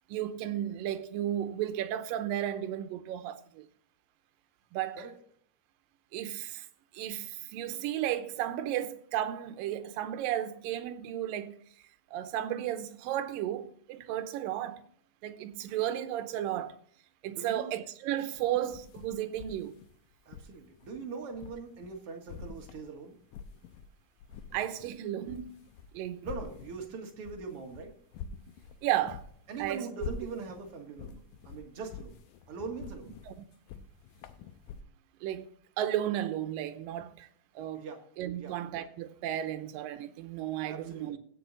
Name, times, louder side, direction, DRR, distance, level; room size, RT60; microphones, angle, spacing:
voice 1, 0.1-3.7 4.7-5.0 6.1-6.7 6.9-11.6 12.1-14.8 15.2-16.7 17.2-19.8 24.5-25.6 25.9-26.3 28.8-29.3 29.6-29.9 33.3-33.4 35.2-35.5 35.8-37.3 37.6-37.9 38.2-41.2, right 12 dB, 80° right, 2.4 m, -34 dB
voice 2, 17.2-17.8 20.3-23.2 26.2-28.0 29.5-32.2 32.5-33.2 37.7-38.0 38.3-38.5 40.7-41.2, right 4 dB, 50° right, 2.1 m, -42 dB
sound 1, 18.4-22.0 22.3-23.9 24.2-34.8, left 6 dB, 80° left, 2.2 m, -46 dB
16.5 x 6.3 x 4.0 m
omnidirectional pair, 4.1 m